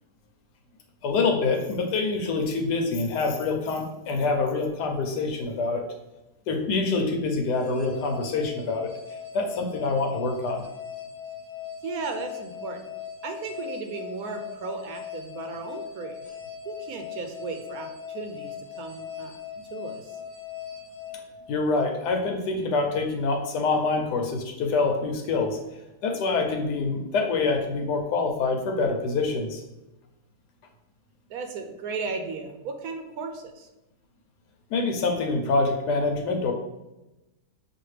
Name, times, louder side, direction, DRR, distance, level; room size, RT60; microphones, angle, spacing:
voice 1, 1.0-5.8 6.5-8.9 9.3-10.7 21.5-25.6 26.0-29.6 34.7-36.5, left 3 dB, 90° left, 4 dB, 1.3 m, -26 dB
sound 1, 7.5-21.9, left 8 dB, 10° right, 1.1 m, -40 dB
voice 2, 11.8-12.9 13.2-16.2 16.6-19.4 19.7-20.2 31.3-33.7, right 4 dB, 75° right, 5 dB, 1.0 m, -35 dB
6.3 x 2.5 x 3.2 m, 0.99 s
omnidirectional pair, 1.7 m